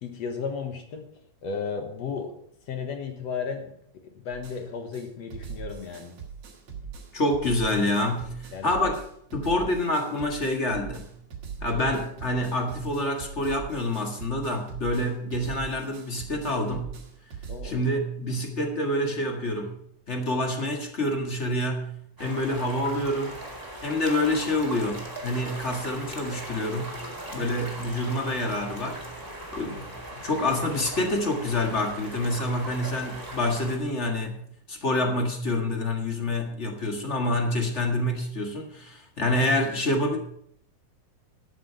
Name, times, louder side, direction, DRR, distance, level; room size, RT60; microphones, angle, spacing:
voice 1, 0.0-2.3 2.7-3.7 4.1-6.2 8.5-8.7 17.5-17.9 26.9-27.2, left 5 dB, 60° left, 5 dB, 2.2 m, -34 dB
sound 1, 4.3-4.6 4.9-5.0 5.3-17.7, right 6 dB, 50° right, 2.7 m, -40 dB
voice 2, 7.1-9.0 9.3-11.1 11.6-16.9 17.6-19.7 20.1-21.9 22.2-23.4 23.8-27.0 27.3-29.0 29.5-29.9 30.2-34.4 34.7-40.2, left 1 dB, 30° left, 3 dB, 1.2 m, -27 dB
sound 2, 22.2-33.8, right 1 dB, 5° right, 1.9 m, -39 dB
12.5 x 8.2 x 5.7 m, 0.67 s
omnidirectional pair, 3.7 m